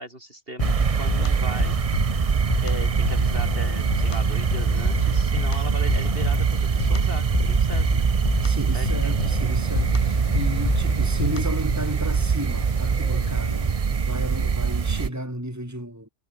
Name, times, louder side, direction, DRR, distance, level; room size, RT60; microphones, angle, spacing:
voice 1, 0.0-1.8 2.6-8.1 8.7-9.1, right 1 dB, 50° right, 7.6 m, -38 dB
sound 1, 0.6-11.7, left 7 dB, 50° left, 0.4 m, -31 dB
sound 2, 0.6-15.1, right 6 dB, 35° right, 0.7 m, -23 dB
sound 3, 2.7-13.7, left 2 dB, 25° left, 2.2 m, -39 dB
voice 2, 8.4-16.1, right 1 dB, 15° right, 5.0 m, -34 dB
omnidirectional pair, 1.2 m